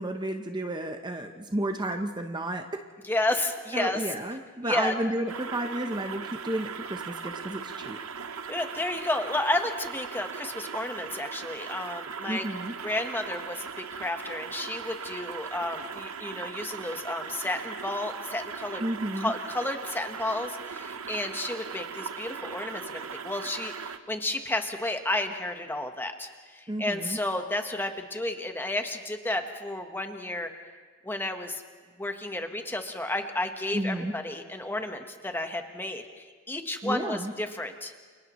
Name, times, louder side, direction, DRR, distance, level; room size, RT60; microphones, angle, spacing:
voice 1, 0.0-2.8 3.7-8.0 12.3-12.7 18.8-19.3 26.7-27.2 33.7-34.1 36.8-37.3, right 1 dB, 20° right, 5 dB, 0.8 m, -32 dB
voice 2, 3.1-4.0 4.6-4.9 8.5-12.5 12.8-18.8 19.2-30.5 31.0-31.6 32.0-37.9, left 2 dB, 10° left, 5 dB, 1.2 m, -32 dB
sound 1, 5.3-24.0, right 6 dB, 70° right, 0.9 m, -39 dB
29.0 x 29.0 x 3.1 m, 1.5 s
head